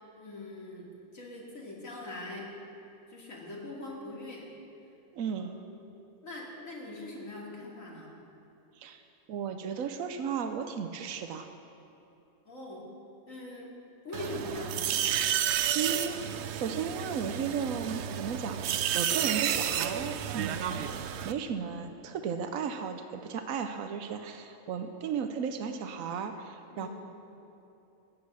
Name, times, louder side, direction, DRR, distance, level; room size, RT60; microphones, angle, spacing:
voice 1, 0.1-2.5 3.1-4.5 5.7-5.8 6.2-8.1 12.4-12.9 13.3-13.7 14.0-14.8 26.7-26.9, left 2 dB, 80° left, -4 dB, 3.0 m, -42 dB
voice 2, 5.1-5.5 8.8-9.0 9.3-11.5 15.7-20.8 21.2-26.9, right 6 dB, 85° right, 7 dB, 1.1 m, -35 dB
sound 1, 14.1-21.3, right 9 dB, 65° right, 0.8 m, -31 dB
15.5 x 9.5 x 6.3 m, 2.8 s
omnidirectional pair, 1.4 m